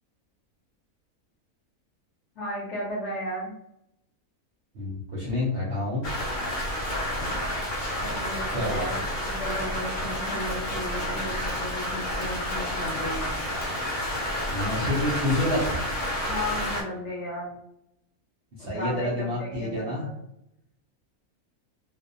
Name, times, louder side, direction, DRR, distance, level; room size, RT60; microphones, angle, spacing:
voice 1, 2.4-3.5 8.0-13.4 16.2-17.6 18.6-20.1, equal, 60° left, -3 dB, 1.0 m, -35 dB
voice 2, 4.7-6.0 8.5-8.9 14.5-15.6 18.5-20.1, left 1 dB, 55° right, -5 dB, 0.7 m, -28 dB
Rain, 6.0-16.8, equal, 85° left, 1.1 m, -30 dB
2.6 x 2.0 x 2.5 m, 0.77 s
omnidirectional pair, 1.5 m